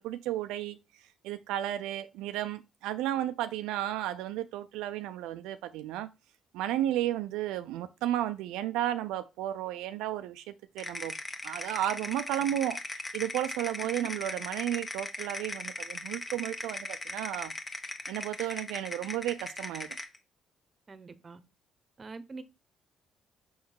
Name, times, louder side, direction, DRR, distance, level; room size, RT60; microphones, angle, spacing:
voice 1, 0.0-6.1 6.5-11.1 11.4-17.5 18.1-19.9, right 13 dB, 85° right, 0.3 m, -33 dB
sound 1, 10.8-20.2, left 2 dB, 25° left, 1.2 m, -39 dB
voice 2, 20.9-21.4 22.0-22.4, right 3 dB, 35° right, 0.9 m, -44 dB
6.1 x 3.6 x 4.5 m
supercardioid pair, 75°, 0 cm